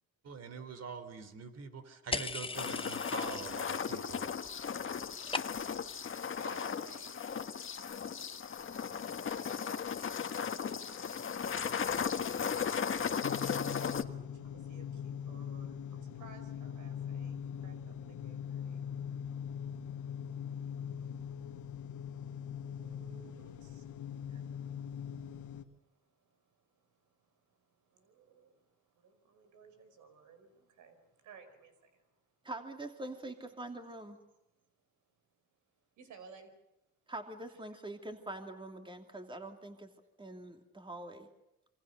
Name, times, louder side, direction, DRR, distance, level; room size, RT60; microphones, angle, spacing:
voice 1, 0.2-4.3, right 5 dB, 55° right, 11 dB, 3.6 m, -44 dB
sound 1, 2.1-3.7 4.0-4.5 4.8-5.9, left 3 dB, 15° left, 1.1 m, -39 dB
sound 2, 2.5-14.0, left 7 dB, 40° left, 1.6 m, -36 dB
voice 2, 4.0-8.6 8.9-32.5 34.5-36.5 37.5-37.6, right 6 dB, 80° right, 7 dB, 5.2 m, -61 dB
sound 3, 13.2-25.6, left 8 dB, 80° left, 1.8 m, -42 dB
voice 3, 32.4-34.2 37.1-39.9 40.2-41.3, right 2 dB, 15° right, 5 dB, 2.8 m, -44 dB
27.5 x 25.0 x 6.8 m, 0.91 s
cardioid pair, 90°, 30 cm